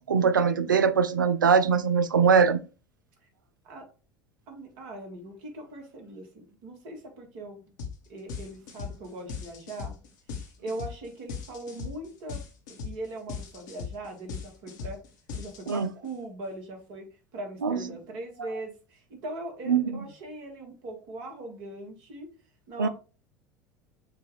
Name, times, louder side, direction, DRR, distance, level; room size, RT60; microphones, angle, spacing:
voice 1, 0.1-2.6 15.7-15.9 17.6-17.8 19.7-19.8 22.8-22.9, right 6 dB, 85° right, 0.4 m, -22 dB
voice 2, 4.5-7.7 8.1-9.9 10.6-12.4 12.8-15.0 15.3-17.0 17.3-22.3 22.7-22.9, right 2 dB, 55° right, 1.5 m, -40 dB
sound 1, 7.8-8.0 8.3-16.1, left 5 dB, 65° left, 1.1 m, -38 dB
6.6 x 2.4 x 3.1 m
figure-of-eight pair, 70°, 10 cm